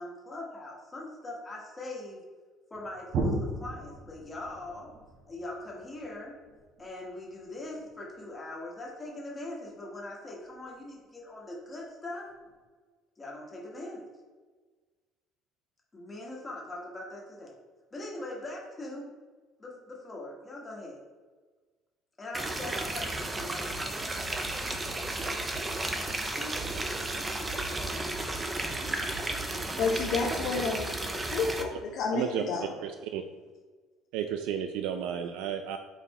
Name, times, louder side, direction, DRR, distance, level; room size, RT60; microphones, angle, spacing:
voice 1, 0.0-2.2 2.7-4.9 5.3-6.3 6.8-12.3 13.2-14.0 15.9-17.5 17.9-19.1 19.6-21.0 22.2-24.1 24.4-24.7, left 2 dB, 15° left, -3 dB, 1.3 m, -41 dB
sound 1, 2.7-8.3 10.4-10.9 11.4-11.5 12.3-12.6, right 2 dB, 45° right, 1.1 m, -37 dB
sound 2, 22.3-31.6, right 2 dB, 15° right, 0.5 m, -33 dB
voice 2, 29.8-30.9 31.3-32.8, left 4 dB, 55° left, 0 dB, 0.7 m, -30 dB
voice 3, 32.1-32.4 32.8-33.2 34.1-35.8, right 9 dB, 85° right, 7 dB, 0.3 m, -32 dB
5.7 x 4.2 x 4.1 m, 1.4 s
cardioid pair, 165°, 0 cm